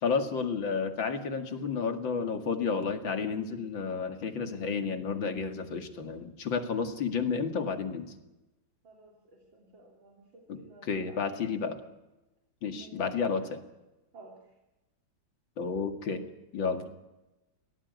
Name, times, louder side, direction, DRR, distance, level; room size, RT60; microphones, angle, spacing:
voice 1, 0.0-8.1 10.5-11.8 12.6-13.6 15.6-16.2 16.5-16.9, left 5 dB, 80° left, 7 dB, 2.8 m, -31 dB
voice 2, 8.8-11.2 12.7-13.5 14.1-14.5 16.7-16.9, right 3 dB, 80° right, 0 dB, 4.0 m, -54 dB
23.0 x 17.5 x 9.4 m, 1.0 s
omnidirectional pair, 2.1 m